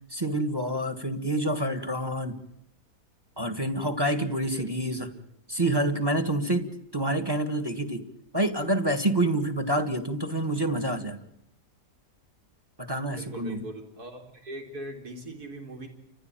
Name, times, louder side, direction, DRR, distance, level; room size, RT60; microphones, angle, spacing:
voice 1, 0.1-2.4 3.4-5.1 5.5-8.1 8.3-11.2 12.8-13.6, right 1 dB, 15° right, 9 dB, 1.7 m, -27 dB
voice 2, 13.1-15.9, right 1 dB, 65° right, 3 dB, 4.3 m, -40 dB
30.0 x 15.0 x 9.0 m, 0.77 s
omnidirectional pair, 1.7 m